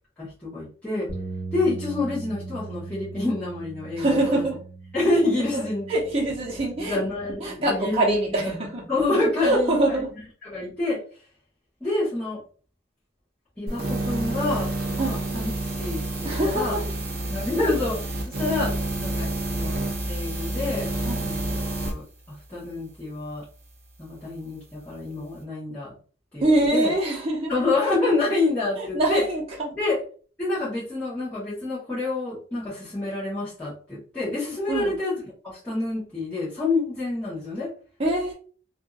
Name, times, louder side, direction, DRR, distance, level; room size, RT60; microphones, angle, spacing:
voice 1, 0.2-1.1 1.5-4.4 4.9-5.9 6.8-8.5 8.9-10.0 10.4-11.0 11.8-12.4 13.6-15.5 15.8-16.8 17.3-18.0 18.4-19.8 20.1-20.9 21.2-23.4 24.0-25.9 26.3-26.5 26.7-26.9 27.5-29.2 29.7-30.0 30.4-35.1 35.4-37.7, left 2 dB, 10° left, -12 dB, 1.1 m, -27 dB
sound 1, 1.1-7.3, right 3 dB, 90° right, 0.8 m, -39 dB
voice 2, 4.0-4.6 5.5-5.6 5.9-7.0 7.4-8.8 9.4-10.1 15.0-15.2 16.2-16.8 21.0-21.3 26.4-27.6 28.8-29.7 34.7-34.9 38.0-38.3, right 1 dB, 35° right, -4 dB, 1.0 m, -24 dB
sound 2, 13.7-21.9, right 2 dB, 55° right, 0.7 m, -29 dB
2.6 x 2.5 x 2.4 m, 0.41 s
head